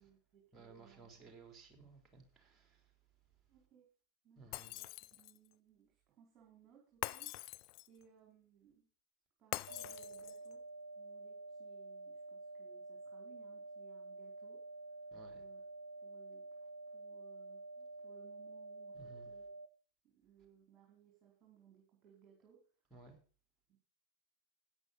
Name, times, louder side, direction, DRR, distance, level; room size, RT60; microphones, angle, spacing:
voice 1, 0.0-1.3 3.5-3.9 4.2-7.4 7.9-8.9 9.4-10.6 11.0-14.6 15.3-15.6 16.0-19.5 20.0-22.6 23.7-23.8, right 8 dB, 25° right, 4.4 m, -66 dB
voice 2, 0.5-3.0 4.4-4.8 15.1-15.4 18.9-19.3 22.9-23.2, right 4 dB, 10° right, 4.0 m, -58 dB
Shatter, 4.5-5.5 7.0-8.0 9.5-10.5, left 19 dB, 40° left, 0.5 m, -44 dB
sound 1, 9.7-19.7, right 3 dB, 70° right, 0.7 m, -50 dB
13.5 x 9.5 x 4.1 m
figure-of-eight pair, 90°, 0 cm